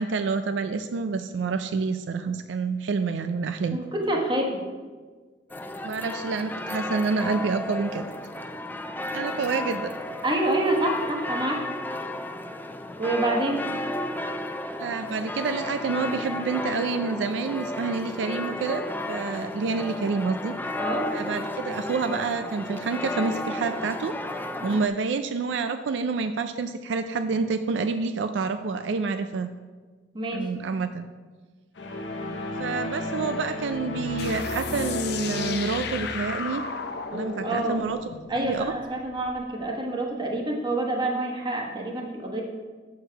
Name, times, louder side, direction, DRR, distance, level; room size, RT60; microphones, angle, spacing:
voice 1, 0.0-3.8 5.8-8.1 9.1-9.9 14.8-20.5 21.1-24.1 24.6-29.5 30.3-31.1 32.6-36.6 37.1-38.0 38.4-38.7, right 4 dB, 80° right, 9 dB, 0.4 m, -28 dB
voice 2, 3.7-4.6 10.2-11.6 13.0-13.7 20.8-21.1 30.1-30.5 37.1-37.8 38.3-42.4, right 1 dB, 25° right, 1 dB, 1.2 m, -27 dB
sound 1, 5.5-24.9, left 1 dB, 10° left, 0.3 m, -33 dB
sound 2, 31.8-36.4, left 2 dB, 85° left, 0.9 m, -33 dB
sound 3, 34.2-39.5, left 5 dB, 65° left, 0.6 m, -35 dB
6.5 x 4.7 x 6.2 m, 1.4 s
head